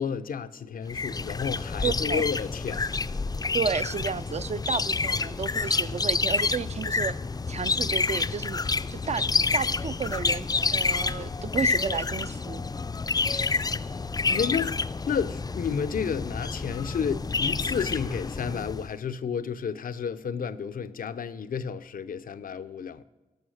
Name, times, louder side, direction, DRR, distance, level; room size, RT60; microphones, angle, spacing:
voice 1, 0.0-2.9 14.3-23.0, left 6 dB, 85° left, 0.5 m, -31 dB
sound 1, 0.9-18.9, left 4 dB, 25° left, 0.3 m, -28 dB
voice 2, 1.8-2.2 3.5-7.2 7.5-8.6 8.9-9.2 9.5-12.6, right 6 dB, 50° right, 0.4 m, -32 dB
17.5 x 6.3 x 6.3 m
wide cardioid pair, 65°, 14 cm